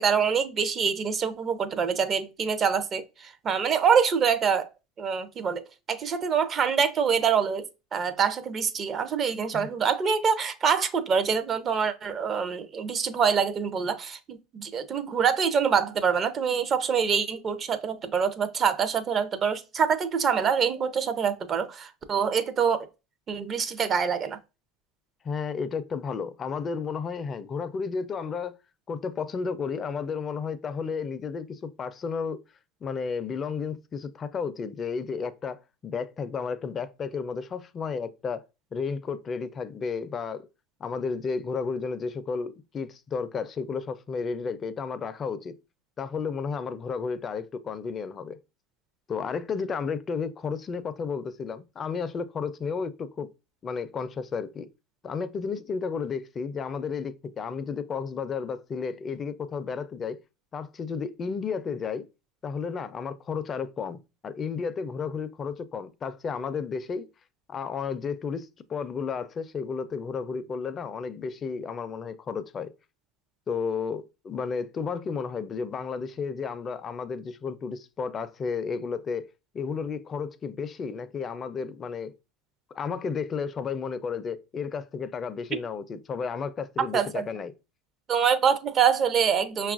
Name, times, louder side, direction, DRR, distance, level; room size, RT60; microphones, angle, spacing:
voice 1, 0.0-4.7 5.0-5.6 5.9-22.9 23.3-24.4 86.8-87.2 88.1-89.7, right 6 dB, 35° right, 0.5 m, -25 dB
voice 2, 25.2-28.6 28.9-32.4 32.8-38.4 38.7-40.5 40.8-45.5 46.0-48.4 49.1-53.3 53.6-54.7 55.0-60.2 60.5-62.1 62.4-64.0 64.2-67.1 67.5-72.7 73.5-79.3 79.5-82.1 82.7-87.5, left 5 dB, 35° left, 0.4 m, -32 dB
5.5 x 2.3 x 2.4 m
hypercardioid pair, 90°, 0 cm